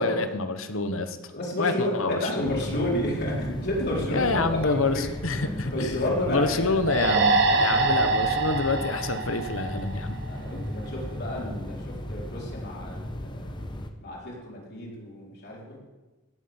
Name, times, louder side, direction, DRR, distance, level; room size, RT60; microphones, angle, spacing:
voice 1, 0.0-1.2 1.6-2.5 4.1-6.0 6.3-10.2, left 3 dB, 70° left, 9 dB, 1.2 m, -27 dB
voice 2, 1.3-6.8 7.5-8.4 10.2-13.5 14.0-15.8, left 1 dB, 55° left, -3 dB, 4.5 m, -31 dB
sound 1, 2.4-13.9, left 1 dB, 20° left, 1.1 m, -36 dB
sound 2, 6.9-10.3, right 3 dB, 60° right, 1.5 m, -24 dB
17.0 x 7.9 x 7.2 m, 1.2 s
head